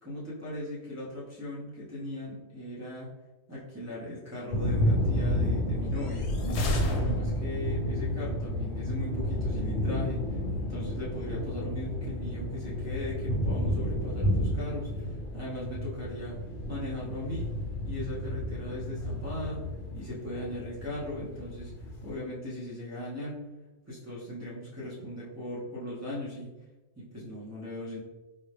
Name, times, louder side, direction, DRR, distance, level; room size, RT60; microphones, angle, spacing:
voice 1, 0.0-3.1 3.5-6.3 6.7-10.2 10.5-16.4 16.7-17.5 17.8-19.6 19.9-21.7 22.0-23.4 23.9-26.5 27.0-28.0, left 1 dB, 15° right, -9 dB, 0.7 m, -38 dB
sound 1, 4.5-22.1, equal, 55° left, 0.9 m, -31 dB
sound 2, 5.9-7.7, left 1 dB, 85° left, 0.9 m, -32 dB
4.0 x 2.3 x 3.3 m, 1.1 s
omnidirectional pair, 1.1 m